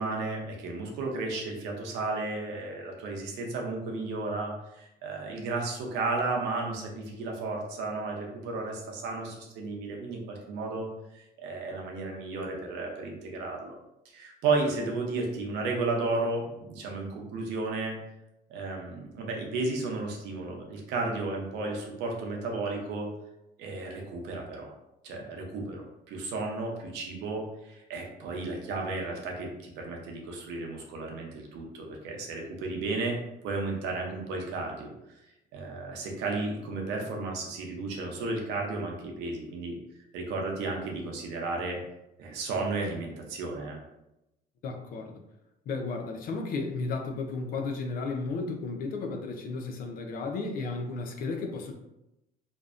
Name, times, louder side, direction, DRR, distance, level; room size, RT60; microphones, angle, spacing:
voice 1, 0.0-10.9 11.1-13.8 14.0-18.0 18.5-23.1 23.6-24.7 25.0-33.2 33.4-34.9 35.5-39.8 40.1-41.8 42.2-43.8, right 3 dB, 90° right, 0 dB, 0.6 m, -33 dB
voice 2, 44.6-45.2 45.7-51.7, left 3 dB, 60° left, 3 dB, 0.4 m, -33 dB
2.5 x 2.0 x 2.4 m, 0.90 s
cardioid pair, 110°, 17 cm